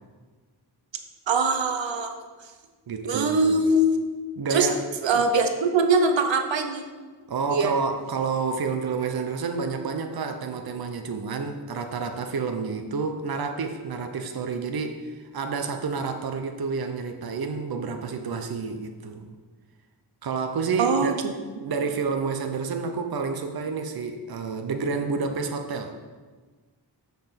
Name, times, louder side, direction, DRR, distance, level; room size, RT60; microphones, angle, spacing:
voice 1, 1.3-2.1 3.0-3.8 4.5-4.7 5.0-6.8 7.5-7.7 20.8-21.3, right 3 dB, 85° right, 6 dB, 0.8 m, -22 dB
voice 2, 2.9-3.6 4.4-4.8 5.1-5.2 7.3-19.3 20.2-21.2 21.6-26.0, right 4 dB, 55° right, 5 dB, 0.8 m, -29 dB
6.9 x 5.9 x 5.7 m, 1.4 s
wide cardioid pair, 125°, 44 cm